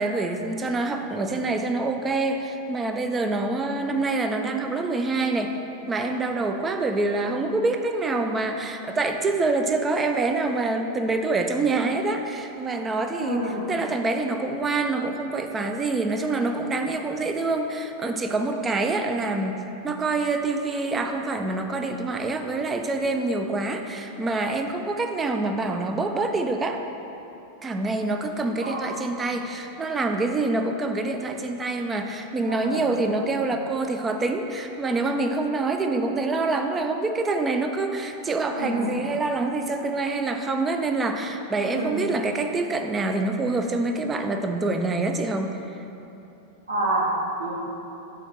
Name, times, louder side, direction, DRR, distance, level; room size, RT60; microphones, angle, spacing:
voice 1, 0.0-5.5 5.9-26.8 27.6-45.6, right 3 dB, 20° right, 5 dB, 0.5 m, -26 dB
voice 2, 13.2-13.7 28.6-29.0 32.4-33.3 38.5-38.9 41.6-42.1 46.7-47.1 47.4-47.5, right 1 dB, 75° right, -3 dB, 1.3 m, -29 dB
7.9 x 3.5 x 6.3 m, 2.9 s
figure-of-eight pair, 90°, 0 cm